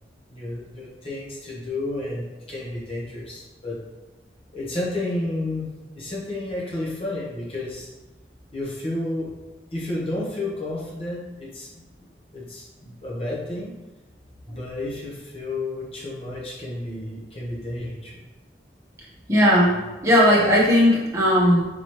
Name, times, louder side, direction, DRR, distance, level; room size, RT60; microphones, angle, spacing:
voice 1, 0.3-3.8 4.5-5.7 5.9-7.9 8.5-9.3 9.7-11.7 12.3-13.8 14.5-18.2, left 2 dB, 30° left, -5 dB, 1.0 m, -31 dB
voice 2, 19.3-21.7, equal, 15° right, -6 dB, 0.9 m, -17 dB
4.1 x 3.0 x 3.1 m, 1.1 s
head